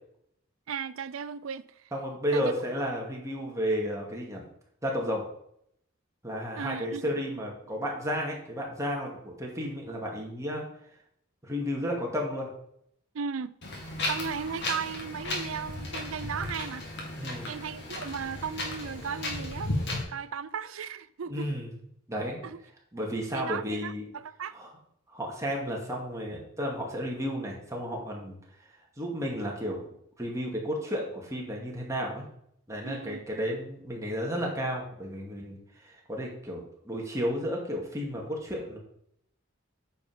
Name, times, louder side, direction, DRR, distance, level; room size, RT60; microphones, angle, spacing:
voice 1, 0.7-1.9 2.3-2.5 6.6-7.2 13.1-13.6 14.1-16.9 17.5-19.7 20.1-21.5 22.4-22.6 23.3-24.6 32.8-33.2, right 6 dB, 90° right, 0.5 m, -36 dB
voice 2, 1.9-4.5 4.8-5.2 6.2-10.7 11.4-12.5 17.2-17.5 21.3-21.7 22.1-22.4 22.9-24.0 24.5-24.7 25.1-28.4 29.0-29.8 30.2-32.2 32.7-38.8, equal, 15° right, 2.2 m, -32 dB
Wind, 13.6-20.0, left 2 dB, 60° left, 2.3 m, -35 dB
9.0 x 5.5 x 5.6 m
head